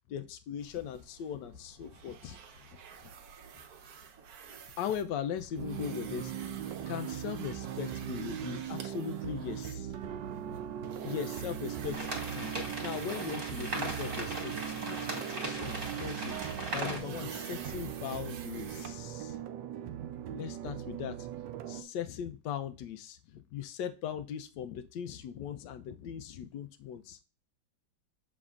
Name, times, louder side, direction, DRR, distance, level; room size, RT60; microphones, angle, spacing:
voice 1, 0.1-2.4 3.0-3.1 4.8-6.6 6.9-9.9 10.5-10.6 11.0-12.0 12.3-12.5 12.8-16.3 16.7-19.4 20.3-21.2 21.6-27.2, left 8 dB, 70° left, 10 dB, 1.2 m, -39 dB
sound 1, 0.6-19.4, right 6 dB, 60° right, 1.1 m, -49 dB
sound 2, 5.6-21.8, right 10 dB, 75° right, 1.3 m, -39 dB
sound 3, 11.9-17.0, right 2 dB, 30° right, 1.3 m, -38 dB
7.2 x 6.0 x 2.4 m, 0.34 s
omnidirectional pair, 2.1 m